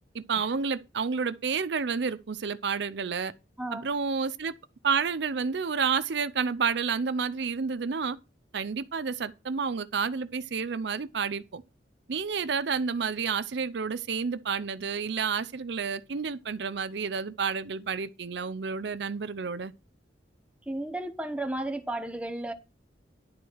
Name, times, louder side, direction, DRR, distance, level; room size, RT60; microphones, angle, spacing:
voice 1, 0.1-3.3 3.7-4.5 4.8-8.2 8.5-11.6 12.1-19.7, right 5 dB, 70° right, 0.5 m, -30 dB
voice 2, 3.6-3.9 20.7-22.5, right 1 dB, 5° right, 1.1 m, -33 dB
11.0 x 4.6 x 6.3 m
head